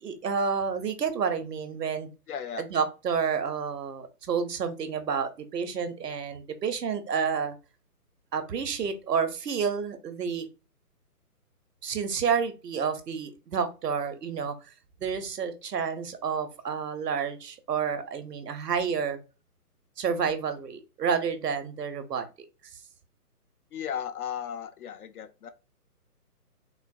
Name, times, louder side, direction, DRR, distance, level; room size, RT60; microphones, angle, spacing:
voice 1, 0.0-2.1 2.6-7.6 8.3-10.4 11.8-14.5 15.0-19.2 20.0-22.3, right 6 dB, 85° right, 0.8 m, -29 dB
voice 2, 2.3-2.6 23.7-25.5, left 8 dB, 70° left, 0.5 m, -35 dB
3.7 x 2.0 x 2.5 m
hypercardioid pair, 150°, 47 cm